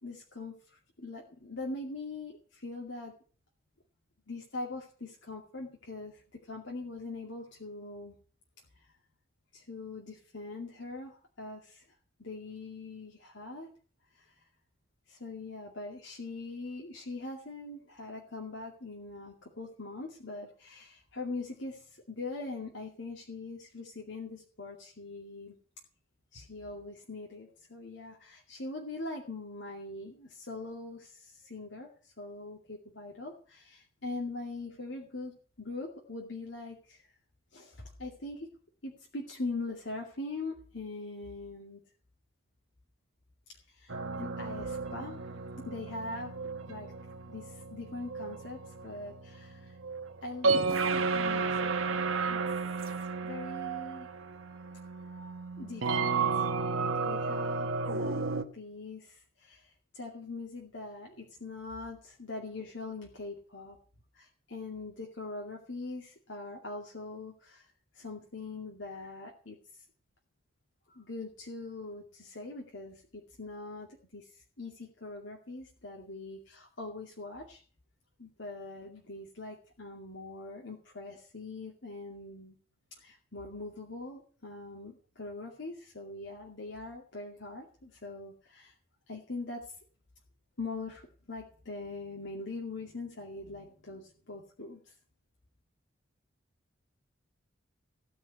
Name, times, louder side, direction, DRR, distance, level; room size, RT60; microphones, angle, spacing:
voice 1, 0.0-3.1 4.3-8.2 8.7-8.9 9.5-11.8 12.2-13.7 14.1-14.3 15.1-25.6 26.3-37.1 37.5-38.5 38.8-41.8 43.7-46.3 46.7-46.9 47.3-49.8 50.2-52.4 53.2-54.1 55.6-56.5 57.0-58.2 58.5-63.8 64.1-69.6 70.9-77.6 78.2-82.6 83.0-88.7 89.1-89.6 90.6-94.9, left 3 dB, 70° left, -1 dB, 2.4 m, -42 dB
sound 1, 43.9-58.4, right 4 dB, 85° right, 1.3 m, -33 dB
16.5 x 5.6 x 9.3 m, 0.42 s
head